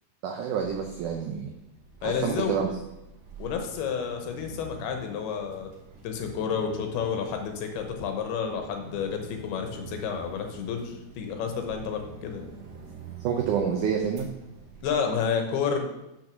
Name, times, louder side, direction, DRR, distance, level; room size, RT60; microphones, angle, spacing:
voice 1, 0.2-1.5 2.0-2.7 13.2-14.3, right 7 dB, 80° right, 1 dB, 1.8 m, -28 dB
sound 1, 0.6-15.2, right 5 dB, 60° right, 1.8 m, -46 dB
voice 2, 2.0-2.6 3.4-5.7 6.0-12.5 14.8-15.8, left 6 dB, 80° left, 5 dB, 2.8 m, -30 dB
6.3 x 6.0 x 6.0 m, 0.90 s
omnidirectional pair, 4.5 m